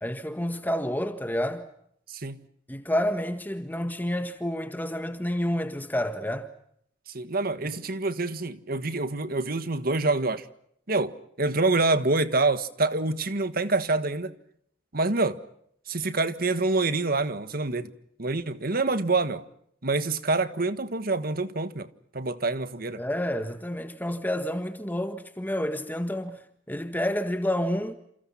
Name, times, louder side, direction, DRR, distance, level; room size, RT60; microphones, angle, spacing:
voice 1, 0.0-1.7 2.7-6.5 23.0-26.4 26.7-27.9, equal, 10° left, 1.6 m, -29 dB
voice 2, 2.1-2.4 7.1-10.5 10.9-14.3 14.9-15.4 15.9-17.9 18.2-19.4 19.8-21.9 22.1-23.0, right 3 dB, 55° right, 1.6 m, -26 dB
29.0 x 28.5 x 5.8 m
head